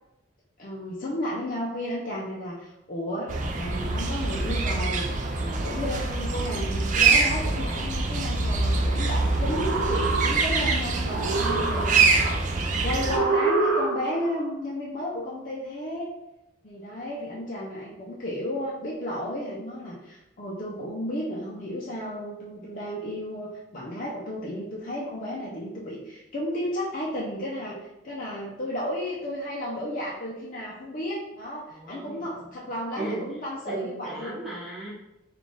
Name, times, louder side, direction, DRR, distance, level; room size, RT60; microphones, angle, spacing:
voice 1, 0.6-5.1 5.3-16.1 16.6-27.8 28.0-34.4, left 1 dB, 40° left, -6 dB, 0.5 m, -33 dB
sound 1, 3.3-13.2, right 3 dB, 40° right, 0.3 m, -25 dB
sound 2, 9.3-10.7 11.0-12.3 13.0-14.3, right 3 dB, 80° right, 0.7 m, -27 dB
voice 2, 31.7-32.6 32.9-33.4 33.7-34.9, right 2 dB, ahead, -9 dB, 0.9 m, -36 dB
3.3 x 2.4 x 3.8 m, 0.91 s
head